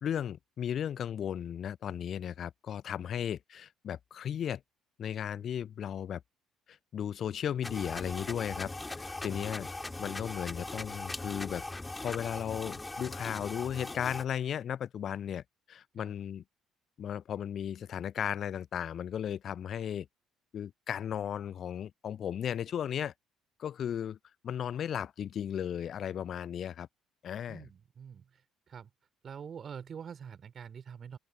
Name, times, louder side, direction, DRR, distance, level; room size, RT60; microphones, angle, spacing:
voice 1, 0.0-4.6 5.0-6.2 6.7-8.7 9.0-9.7 10.0-11.6 12.0-16.4 17.0-20.1 20.5-23.1 23.6-24.2 24.4-26.9 27.2-27.7, left 9 dB, 45° left, 0.5 m, -35 dB
sound 1, 7.6-14.2, left 2 dB, 15° left, 4.1 m, -40 dB
voice 2, 27.5-28.4 28.7-28.9 29.2-31.2, right 7 dB, 40° right, 4.0 m, -45 dB
open air
figure-of-eight pair, 50°, 0 cm